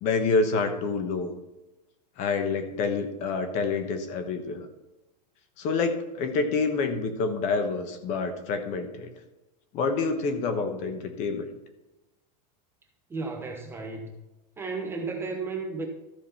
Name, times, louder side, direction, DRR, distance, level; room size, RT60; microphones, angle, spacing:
voice 1, 0.0-1.3 2.2-4.7 5.6-9.1 9.7-11.5, left 4 dB, 35° left, 8 dB, 1.2 m, -27 dB
voice 2, 13.1-14.2 14.6-15.9, right 4 dB, 10° right, 2 dB, 0.8 m, -33 dB
13.5 x 5.2 x 5.6 m, 1.0 s
supercardioid pair, 170°, 21 cm